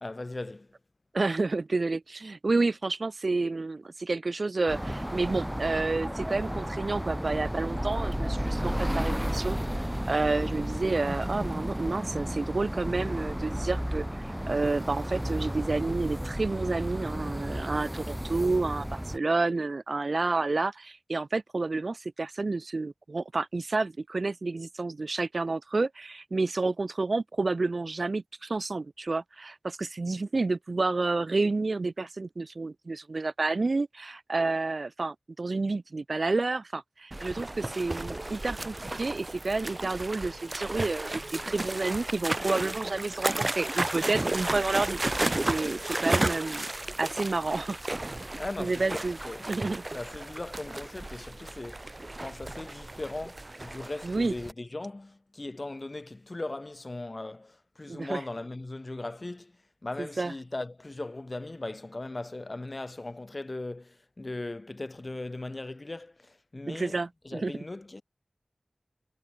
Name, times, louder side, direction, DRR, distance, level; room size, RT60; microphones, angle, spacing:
voice 1, 0.0-0.7 48.4-49.5 49.9-51.9 52.2-59.5 59.8-68.0, left 2 dB, 45° left, 2.0 m, -38 dB
voice 2, 1.1-9.6 10.1-46.7 47.0-47.8 48.6-49.2 49.5-49.8 54.0-54.3 57.9-58.2 60.0-60.3 66.7-67.5, right 3 dB, 70° right, 0.9 m, -30 dB
sound 1, 4.7-19.2, equal, 5° right, 1.8 m, -33 dB
sound 2, 37.1-54.5, right 2 dB, 35° right, 4.6 m, -33 dB
wide cardioid pair, 55°, 0 cm